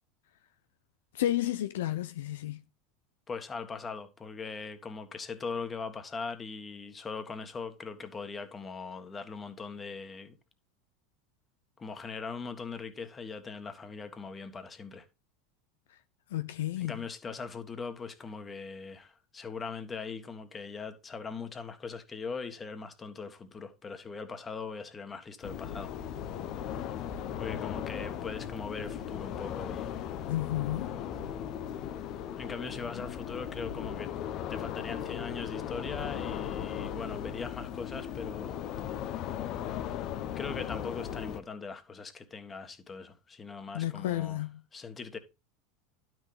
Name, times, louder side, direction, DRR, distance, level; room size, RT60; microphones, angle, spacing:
voice 1, 1.1-2.6 16.3-16.9 30.3-30.9 43.7-44.6, left 13 dB, 70° left, 0.5 m, -31 dB
voice 2, 3.3-10.4 11.8-15.0 16.8-25.9 27.4-29.9 32.3-34.1 34.5-38.6 40.3-44.4 44.7-45.2, left 5 dB, 25° left, 1.7 m, -40 dB
sound 1, 25.4-41.4, left 9 dB, 50° left, 0.9 m, -37 dB
11.5 x 6.3 x 3.3 m
hypercardioid pair, 80°, 0 cm